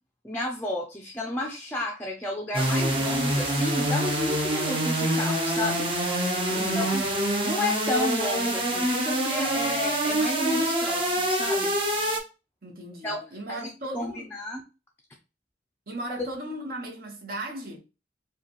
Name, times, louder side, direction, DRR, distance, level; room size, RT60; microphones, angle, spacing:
voice 1, 0.2-5.9 6.5-7.0 7.4-11.7 13.0-14.6 16.2-16.3, left 1 dB, 10° left, 0.5 m, -32 dB
sound 1, 2.5-12.2, right 1 dB, 30° right, 0.9 m, -26 dB
voice 2, 6.5-7.0 12.6-14.3 15.9-17.8, right 1 dB, 55° right, 1.3 m, -37 dB
4.8 x 2.4 x 3.0 m
head